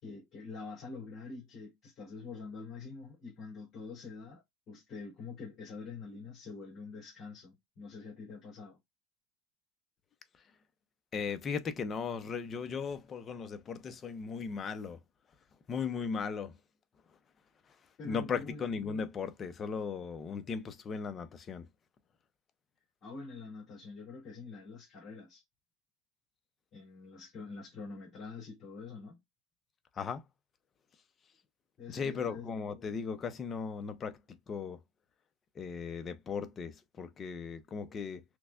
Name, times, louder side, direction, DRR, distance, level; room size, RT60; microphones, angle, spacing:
voice 1, 0.0-8.8 18.0-18.6 23.0-25.4 26.7-29.2 31.8-32.5, left 4 dB, 45° left, 2.5 m, -46 dB
voice 2, 11.1-15.0 15.7-16.6 18.0-21.7 30.0-30.2 31.9-34.8 35.6-38.2, left 5 dB, 25° left, 0.6 m, -37 dB
6.0 x 2.2 x 2.4 m
cardioid pair, 145°, 0 cm